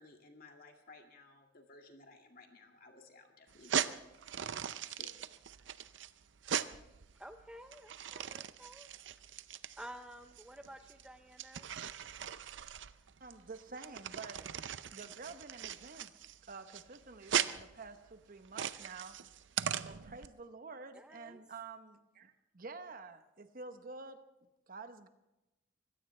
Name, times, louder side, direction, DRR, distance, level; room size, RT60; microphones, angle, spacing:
voice 1, 0.0-3.9 4.9-5.1, left 3 dB, 50° left, 3 dB, 2.2 m, -57 dB
sound 1, 3.5-20.3, right 8 dB, 75° right, 0.6 m, -40 dB
voice 2, 7.2-8.9 9.8-11.7 20.9-21.4, right 1 dB, 5° right, 7 dB, 0.5 m, -51 dB
voice 3, 13.2-14.5 14.9-16.1 16.5-19.2 19.8-24.2 24.7-25.1, right 4 dB, 50° right, 9 dB, 1.0 m, -49 dB
24.0 x 16.5 x 3.3 m, 0.96 s
head